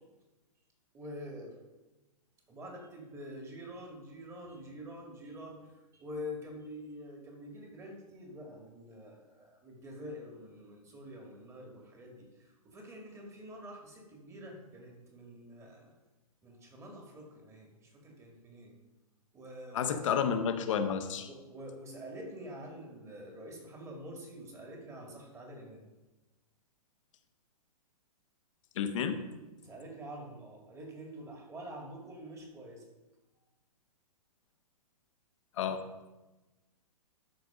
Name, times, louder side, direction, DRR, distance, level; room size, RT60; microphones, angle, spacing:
voice 1, 0.9-1.5 2.5-5.6 5.9-15.9 16.4-18.8 19.3-19.9 21.3-25.8 29.6-32.8, equal, 15° right, 0 dB, 2.2 m, -46 dB
voice 2, 19.7-21.3 28.7-29.2 35.6-35.8, left 7 dB, 55° left, 8 dB, 1.1 m, -30 dB
12.5 x 4.8 x 5.1 m, 1.1 s
figure-of-eight pair, 120°, 20 cm